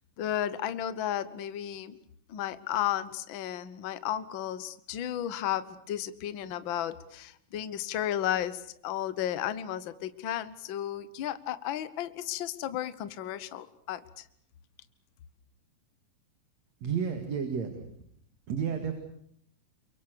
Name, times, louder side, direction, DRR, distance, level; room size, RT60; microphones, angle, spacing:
voice 1, 0.2-2.0 2.3-14.2, left 11 dB, 65° left, 14 dB, 1.2 m, -33 dB
voice 2, 16.8-18.0 18.5-19.0, right 7 dB, 55° right, 6 dB, 3.1 m, -32 dB
29.5 x 23.5 x 6.8 m, 0.67 s
omnidirectional pair, 3.8 m